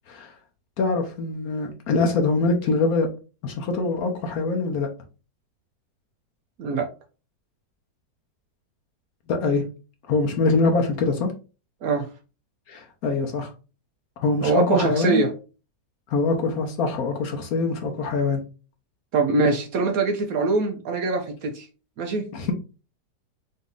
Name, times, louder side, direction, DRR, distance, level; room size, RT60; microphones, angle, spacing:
voice 1, 0.8-3.1 3.4-4.9 9.3-9.6 10.1-11.3 12.7-13.5 14.2-15.2 16.1-18.4 22.3-22.5, left 3 dB, 65° left, 4 dB, 1.1 m, -23 dB
voice 2, 6.6-6.9 11.8-12.1 14.4-15.3 19.1-21.7 22.0-22.3, right 3 dB, 65° right, 4 dB, 0.9 m, -23 dB
4.0 x 2.7 x 3.7 m, 0.33 s
omnidirectional pair, 1.9 m